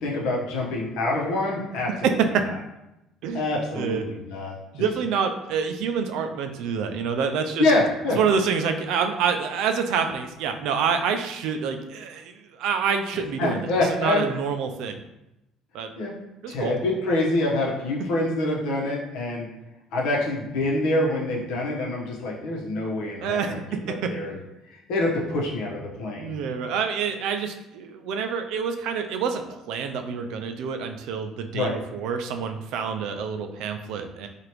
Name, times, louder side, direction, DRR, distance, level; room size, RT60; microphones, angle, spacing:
voice 1, 0.0-1.9 3.3-4.8 7.6-8.2 13.4-14.2 16.0-16.1 16.5-19.5 19.9-23.6 23.8-24.3 24.9-26.3 31.5-31.7, left 2 dB, 70° left, -3 dB, 1.0 m, -26 dB
voice 2, 2.0-2.5 3.2-3.5 3.8-4.0 4.7-7.7 8.1-15.0 15.7-15.9 16.4-16.7 23.2-24.1 26.2-34.3, right 6 dB, 65° right, 6 dB, 0.4 m, -27 dB
4.9 x 2.5 x 3.0 m, 0.91 s
cardioid pair, 180°, 0 cm